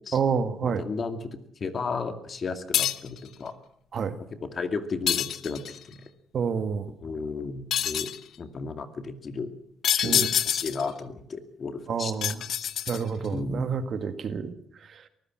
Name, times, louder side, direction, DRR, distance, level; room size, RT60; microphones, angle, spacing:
voice 1, 0.1-0.8 3.9-4.2 6.3-6.9 10.0-10.3 11.9-12.4 12.9-14.6 14.9-15.0, right 6 dB, 55° right, 10 dB, 1.9 m, -28 dB
voice 2, 0.6-3.5 4.2-4.3 4.5-6.0 7.0-8.1 8.4-9.5 9.9-12.1 12.6-12.7 13.3-13.8, left 4 dB, 45° left, 8 dB, 2.3 m, -34 dB
sound 1, 2.7-3.2 5.1-5.8 7.7-8.2 9.8-10.9 12.2-13.3, left 10 dB, 70° left, 0.8 m, -26 dB
23.5 x 15.5 x 7.6 m, 0.68 s
cardioid pair, 90°, 0 cm